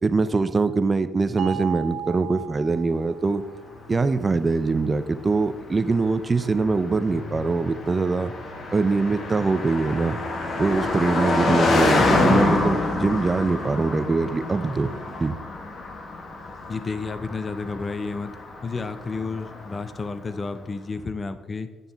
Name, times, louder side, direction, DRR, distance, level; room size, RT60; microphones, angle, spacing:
voice 1, 0.0-3.4 3.9-8.3 8.7-10.2 10.6-14.9 15.2-15.4, right 3 dB, 30° right, 12 dB, 0.4 m, -23 dB
sound 1, 1.4-3.6, right 11 dB, 70° right, 1.9 m, -35 dB
Car passing by, 3.7-20.1, left 2 dB, 55° left, 1.2 m, -27 dB
voice 2, 16.7-21.7, left 4 dB, 35° left, 11 dB, 0.5 m, -31 dB
9.1 x 5.4 x 3.4 m, 1.2 s
cardioid pair, 90°, 0 cm